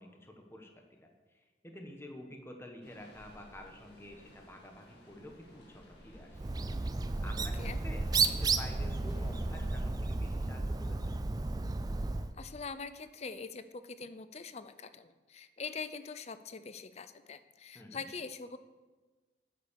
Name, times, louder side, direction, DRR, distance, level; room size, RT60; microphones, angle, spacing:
voice 1, 0.0-6.5 7.2-11.1 17.7-18.0, left 1 dB, 15° left, 3 dB, 1.3 m, -50 dB
sound 1, 2.8-9.7, equal, 60° left, 2.3 m, -55 dB
Bird, 6.3-12.3, right 3 dB, 20° right, 0.4 m, -33 dB
voice 2, 12.4-18.6, left 5 dB, 35° left, 12 dB, 0.5 m, -43 dB
9.1 x 8.4 x 6.8 m, 1.3 s
head